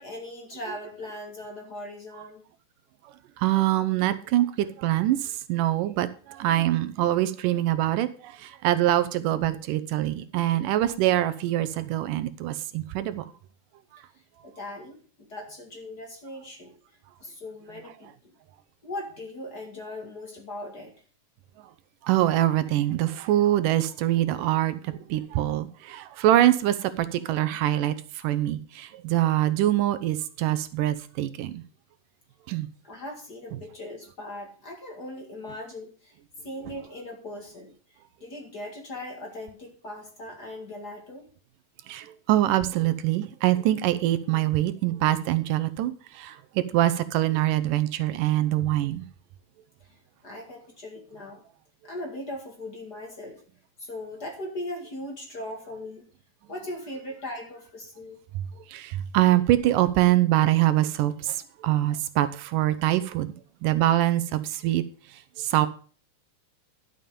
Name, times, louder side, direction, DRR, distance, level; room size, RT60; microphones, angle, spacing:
voice 1, 0.0-2.4 14.4-16.7 17.2-18.3 18.8-20.9 32.8-36.2 36.4-37.7 38.2-41.3 49.9-50.0 50.2-51.4 51.8-53.4 53.8-56.1 56.5-58.2, left 1 dB, 35° left, 2.1 m, -39 dB
voice 2, 3.4-13.3 22.0-31.6 32.5-32.7 41.9-49.1 58.7-63.3 63.6-64.8 65.4-65.7, right 14 dB, 85° right, 2.4 m, -24 dB
11.5 x 7.1 x 5.2 m
omnidirectional pair, 3.7 m